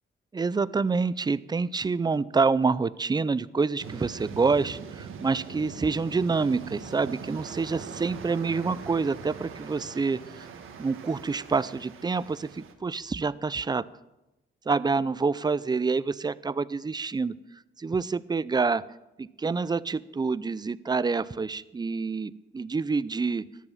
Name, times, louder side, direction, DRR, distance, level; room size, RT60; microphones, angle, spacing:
voice 1, 0.3-10.5 10.8-13.9 14.7-17.3 17.8-18.8 19.2-23.4, right 4 dB, 20° right, 18 dB, 0.5 m, -27 dB
sound 1, 3.8-12.7, right 6 dB, 85° right, 1.6 m, -42 dB
14.5 x 11.0 x 5.7 m, 0.97 s
cardioid pair, 90°, 20 cm